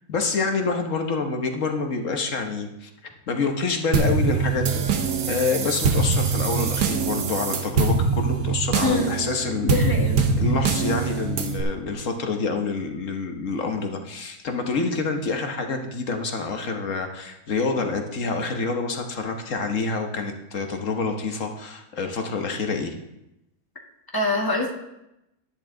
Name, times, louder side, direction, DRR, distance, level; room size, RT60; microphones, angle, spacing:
voice 1, 0.1-2.9 3.3-4.8 5.3-9.9 10.4-22.9, left 4 dB, 60° left, 4 dB, 1.4 m, -27 dB
sound 1, 3.9-11.6, right 5 dB, 75° right, 1.5 m, -23 dB
voice 2, 8.8-9.1 9.6-10.2 24.1-24.7, left 2 dB, 15° left, 0 dB, 1.5 m, -24 dB
10.5 x 10.5 x 3.8 m, 0.88 s
omnidirectional pair, 1.6 m